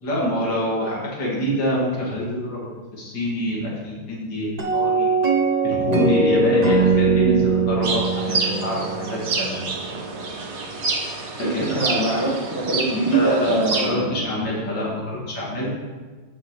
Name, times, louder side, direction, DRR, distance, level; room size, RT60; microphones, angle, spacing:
voice 1, 0.0-2.7 2.9-5.1 5.6-9.6 11.5-12.0 13.1-15.7, left 1 dB, 65° left, -5 dB, 3.0 m, -25 dB
sound 1, 4.6-9.8, right 4 dB, 60° right, 0.4 m, -21 dB
sound 2, 7.8-13.9, right 3 dB, 40° right, 1.1 m, -28 dB
voice 2, 11.4-14.2, right 2 dB, 15° right, -7 dB, 1.0 m, -23 dB
14.5 x 6.2 x 3.2 m, 1.4 s
omnidirectional pair, 2.1 m